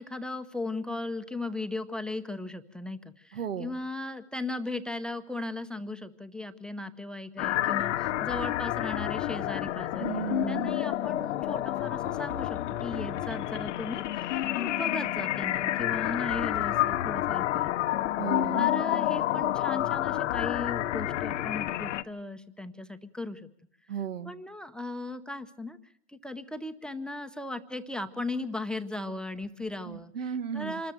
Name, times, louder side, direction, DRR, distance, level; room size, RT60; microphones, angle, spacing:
voice 1, 0.0-17.7 18.5-23.5 24.2-25.8 26.1-30.1 30.5-30.9, left 2 dB, ahead, 12 dB, 0.7 m, -37 dB
voice 2, 3.3-3.8 10.0-10.8 18.2-18.7 23.9-24.3 29.8-30.8, right 8 dB, 85° right, 12 dB, 1.4 m, -34 dB
sound 1, 7.4-22.0, left 14 dB, 70° left, 1.0 m, -29 dB
26.0 x 13.5 x 7.6 m, 0.70 s
hypercardioid pair, 125°, 37 cm